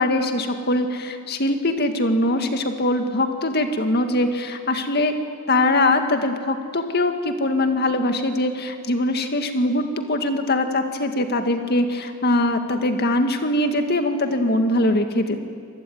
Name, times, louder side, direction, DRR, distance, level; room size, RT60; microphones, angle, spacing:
voice 1, 0.0-5.1 5.5-15.4, left 1 dB, 50° left, 6 dB, 2.1 m, -22 dB
26.0 x 19.5 x 9.5 m, 2.3 s
head